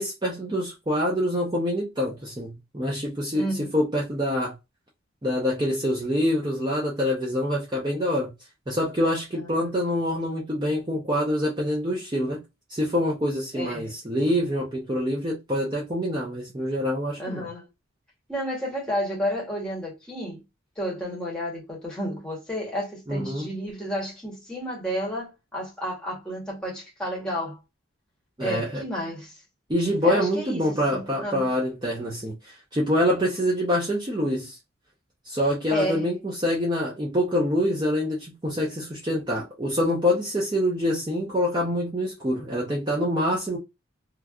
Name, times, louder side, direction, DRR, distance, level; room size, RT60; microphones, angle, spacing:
voice 1, 0.0-4.5 5.2-8.3 8.7-12.4 12.7-17.5 23.1-23.5 28.4-28.8 29.7-34.6 35.2-43.6, equal, 20° right, 0.6 m, -26 dB
voice 2, 3.3-3.7 9.5-10.0 13.5-13.9 17.2-17.7 18.3-20.4 20.8-27.6 28.4-29.4 30.0-31.5 35.7-36.0, equal, 5° left, 1.1 m, -31 dB
3.1 x 2.3 x 2.4 m
head